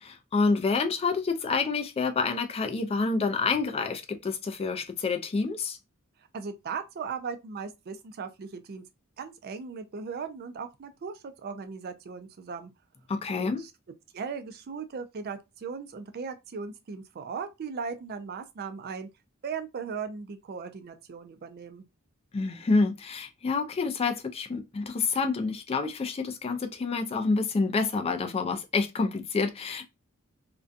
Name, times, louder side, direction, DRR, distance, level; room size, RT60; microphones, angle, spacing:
voice 1, 0.0-5.8 13.1-13.6 22.3-29.8, left 4 dB, 25° left, 0.3 m, -28 dB
voice 2, 6.3-8.8 9.2-12.7 13.4-13.7 14.1-19.1 19.4-21.9, right 5 dB, 45° right, 0.3 m, -38 dB
2.5 x 2.2 x 2.5 m
head